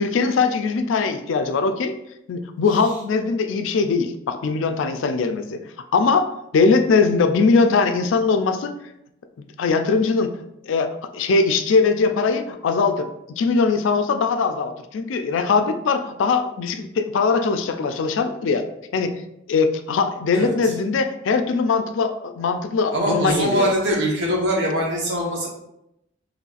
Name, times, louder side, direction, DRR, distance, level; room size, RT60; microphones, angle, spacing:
voice 1, 0.0-1.9 2.3-5.6 5.9-8.7 9.6-10.3 10.6-10.9 11.1-13.1 13.4-18.6 18.9-19.2 19.5-23.7, left 4 dB, 80° left, 8 dB, 0.4 m, -21 dB
voice 2, 20.3-20.7 22.9-25.5, equal, 65° right, -3 dB, 1.0 m, -22 dB
3.9 x 3.1 x 2.4 m, 0.84 s
head